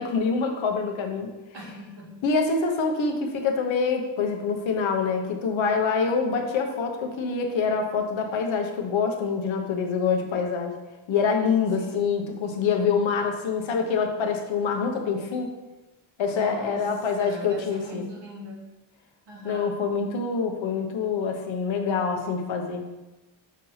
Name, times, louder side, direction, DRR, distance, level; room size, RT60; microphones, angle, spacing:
voice 1, 0.0-1.3 2.2-10.8 11.1-15.5 16.2-18.0 19.4-22.8, left 5 dB, 70° left, 3 dB, 1.0 m, -25 dB
voice 2, 1.5-2.2 11.8-12.1 16.3-16.9 17.2-18.6 19.3-19.8, equal, 60° right, -2 dB, 1.6 m, -39 dB
6.2 x 2.8 x 5.6 m, 1.1 s
cardioid pair, 130°, 47 cm